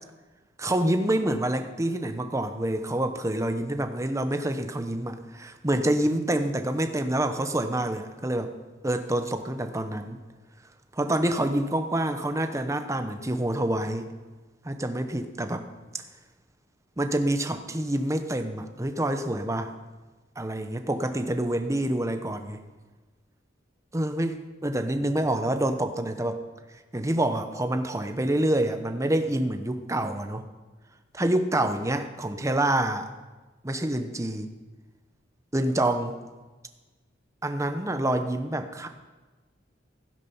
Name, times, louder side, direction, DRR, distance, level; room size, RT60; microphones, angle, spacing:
voice 1, 0.6-8.5 8.8-10.2 10.9-14.1 14.6-15.6 17.0-19.7 20.4-22.6 23.9-24.4 24.6-26.4 26.9-30.4 31.1-33.1 33.6-34.5 35.5-36.2 37.4-38.9, right 1 dB, 15° right, 7 dB, 0.9 m, -27 dB
16.0 x 10.0 x 5.6 m, 1.2 s
head